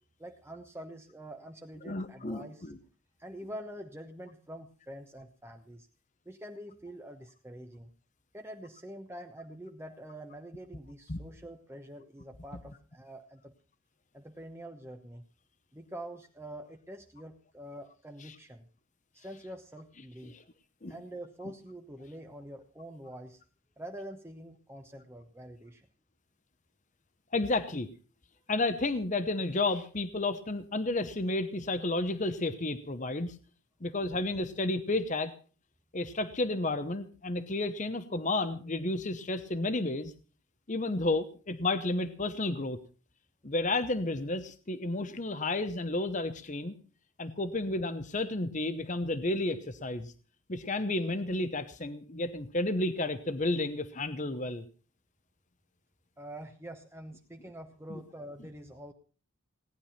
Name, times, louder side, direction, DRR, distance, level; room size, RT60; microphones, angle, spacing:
voice 1, 0.2-2.7 3.2-5.9 6.2-7.9 8.3-13.5 14.1-15.2 15.7-18.7 19.1-20.4 20.9-23.4 23.8-25.9 56.2-58.9, right 1 dB, 10° right, 4 dB, 1.0 m, -46 dB
voice 2, 1.8-2.8 11.1-11.2 18.3-18.4 20.2-20.4 20.8-21.0 27.3-27.9 28.5-33.4 33.8-35.3 35.9-40.1 40.7-42.8 43.4-46.7 47.2-50.1 50.5-54.6 57.9-58.0, left 2 dB, 35° left, 11 dB, 0.9 m, -31 dB
18.0 x 11.0 x 5.8 m, 0.39 s
head